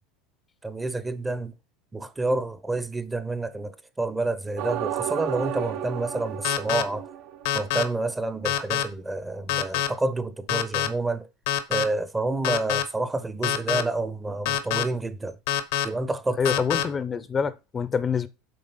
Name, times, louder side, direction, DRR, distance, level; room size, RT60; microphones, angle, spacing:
voice 1, 0.6-1.5 1.9-7.1 7.5-11.3 11.7-15.4 15.8-16.4, right 2 dB, 15° right, 0.6 m, -29 dB
sound 1, 4.6-7.9, right 11 dB, 65° right, 0.7 m, -33 dB
sound 2, 6.4-6.8 7.5-7.8 8.5-8.8 9.5-9.9 10.5-10.9 11.5-11.8 12.4-12.8 13.4-13.8 14.5-14.8 15.5-15.9 16.5-16.8, left 10 dB, 75° left, 0.8 m, -25 dB
voice 2, 16.4-18.3, left 6 dB, 25° left, 0.5 m, -26 dB
7.8 x 3.4 x 5.5 m
supercardioid pair, 110°, 0 cm